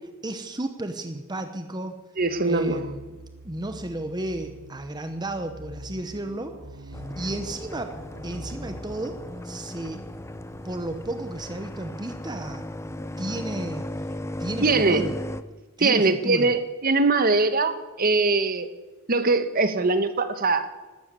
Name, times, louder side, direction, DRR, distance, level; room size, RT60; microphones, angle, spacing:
voice 1, 0.2-2.0 2.4-3.2 3.4-8.0 8.2-9.2 9.4-10.0 10.6-12.7 13.2-15.2 15.8-16.5, right 1 dB, 20° right, 7 dB, 0.9 m, -33 dB
voice 2, 2.2-2.8 14.6-15.1 15.8-18.7 19.1-20.7, right 3 dB, 45° right, 11 dB, 1.2 m, -22 dB
sound 1, 2.2-9.4, right 1 dB, 75° right, 1.4 m, -44 dB
sound 2, 6.9-15.4, left 1 dB, 15° left, 0.6 m, -36 dB
13.0 x 13.0 x 8.2 m, 1.2 s
head